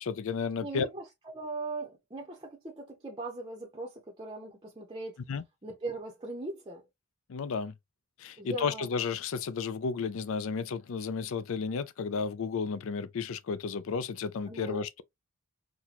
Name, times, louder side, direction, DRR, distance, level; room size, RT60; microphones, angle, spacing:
voice 1, 0.0-0.9 5.3-5.4 7.3-7.7 8.2-15.0, left 5 dB, 60° left, 0.4 m, -33 dB
voice 2, 0.6-1.0 1.3-5.2 5.6-6.8 8.4-8.9 14.5-14.8, right 2 dB, 20° right, 0.7 m, -39 dB
4.1 x 2.2 x 2.9 m
head